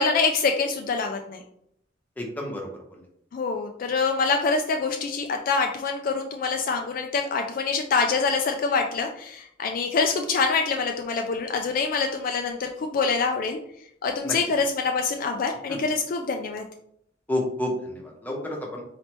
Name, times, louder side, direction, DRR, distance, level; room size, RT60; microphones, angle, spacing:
voice 1, 0.0-1.4 3.3-13.6 14.0-16.6, left 4 dB, 45° left, 4 dB, 0.3 m, -25 dB
voice 2, 2.2-3.0 14.2-14.3 15.7-15.8 17.3-18.8, left 1 dB, 10° left, -1 dB, 0.8 m, -30 dB
4.0 x 3.2 x 3.0 m, 0.73 s
head